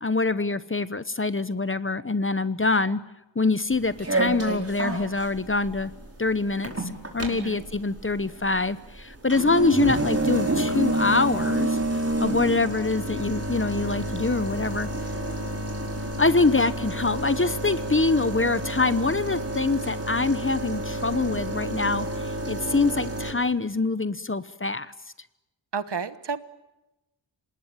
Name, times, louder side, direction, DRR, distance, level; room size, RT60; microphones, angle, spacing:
voice 1, 0.0-3.0 3.3-5.9 6.2-6.7 7.1-14.9 16.2-24.9, left 3 dB, 25° left, 14 dB, 1.0 m, -25 dB
sound 1, 3.7-23.3, right 1 dB, 30° right, 4.9 m, -29 dB
voice 2, 7.3-7.6 25.7-26.4, right 5 dB, 60° right, 13 dB, 1.3 m, -31 dB
27.0 x 20.0 x 9.2 m, 0.98 s
wide cardioid pair, 75°, 46 cm